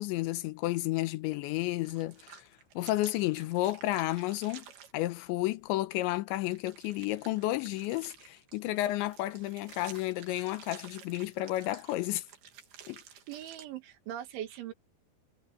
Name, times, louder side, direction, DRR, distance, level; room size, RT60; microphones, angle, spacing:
voice 1, 0.0-2.4 2.8-4.6 4.9-12.2 12.9-13.0, left 17 dB, 80° left, 3.2 m, -32 dB
sound 1, 1.6-4.9 6.5-13.7, right 8 dB, 60° right, 4.0 m, -52 dB
voice 2, 13.3-14.7, right 11 dB, 90° right, 4.4 m, -40 dB
omnidirectional pair, 5.2 m